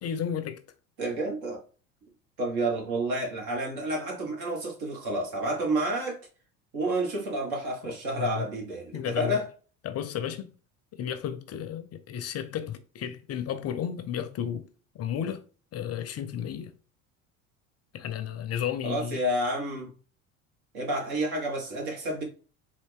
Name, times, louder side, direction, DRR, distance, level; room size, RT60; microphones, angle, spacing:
voice 1, 0.0-0.6 8.1-8.4 8.9-9.4 9.8-10.5 10.9-14.7 14.9-15.5 15.7-16.7 17.9-19.2, left 9 dB, 40° left, 0.5 m, -33 dB
voice 2, 1.0-1.6 2.4-6.2 6.7-9.5 18.8-19.9 20.7-22.2, right 1 dB, 65° right, 1.8 m, -30 dB
4.0 x 2.6 x 3.5 m
hypercardioid pair, 75°, 40 cm